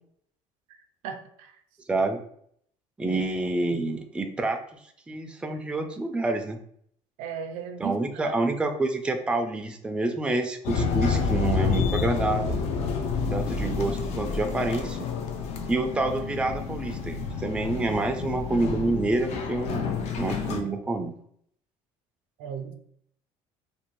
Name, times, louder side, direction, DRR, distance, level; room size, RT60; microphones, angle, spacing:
voice 1, 1.0-1.6 3.1-3.2 7.2-8.3 22.4-22.7, right 7 dB, 80° right, 7 dB, 0.4 m, -36 dB
voice 2, 1.9-2.2 3.0-4.6 5.1-6.6 7.8-12.6 13.3-15.0 15.7-19.9 20.2-21.1, right 2 dB, 10° right, 5 dB, 0.3 m, -28 dB
sound 1, 10.6-20.6, left 5 dB, 60° left, 0.4 m, -29 dB
2.6 x 2.1 x 2.9 m, 0.65 s
cardioid pair, 110°, 13 cm